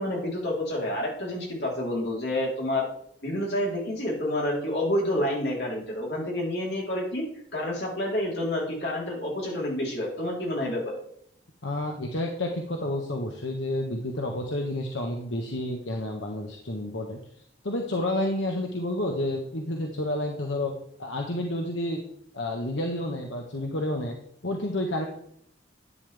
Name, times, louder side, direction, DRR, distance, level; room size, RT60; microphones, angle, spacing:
voice 1, 0.0-2.9 3.2-7.2 7.5-11.0, left 1 dB, 60° left, -3 dB, 3.8 m, -29 dB
voice 2, 11.6-17.2 17.6-20.7 21.0-22.0 22.3-24.2 24.4-25.1, left 1 dB, 85° left, 1 dB, 1.4 m, -30 dB
11.5 x 9.8 x 3.5 m, 0.69 s
head